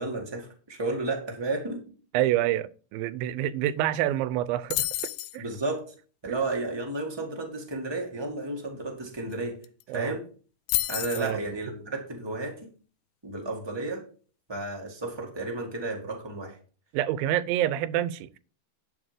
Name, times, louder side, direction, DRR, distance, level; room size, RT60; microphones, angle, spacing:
voice 1, 0.0-1.8 5.4-5.9 6.2-9.6 9.9-10.3 10.9-12.7 13.2-14.0 14.5-16.6, right 2 dB, 25° right, 0.5 m, -32 dB
voice 2, 2.1-4.9 5.3-5.4 6.3-6.4 9.9-10.2 11.2-11.4 16.9-18.4, right 13 dB, 85° right, 2.4 m, -27 dB
sound 1, 4.7-5.4 9.3-9.4 9.6-10.0 10.7-11.3, left 17 dB, 80° left, 2.1 m, -29 dB
11.0 x 4.7 x 5.1 m
omnidirectional pair, 4.1 m